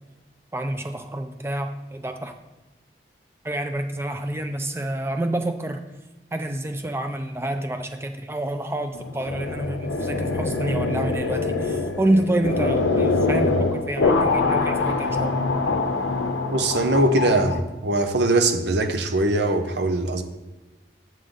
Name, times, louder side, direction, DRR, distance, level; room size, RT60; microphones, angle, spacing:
voice 1, 0.5-2.3 3.4-5.8 6.3-15.6, right 1 dB, 15° right, 6 dB, 0.5 m, -28 dB
sound 1, 8.9-17.6, left 3 dB, 85° left, 0.6 m, -24 dB
voice 2, 16.5-20.2, right 2 dB, 65° right, 7 dB, 0.7 m, -21 dB
7.4 x 6.6 x 3.9 m, 1.1 s
head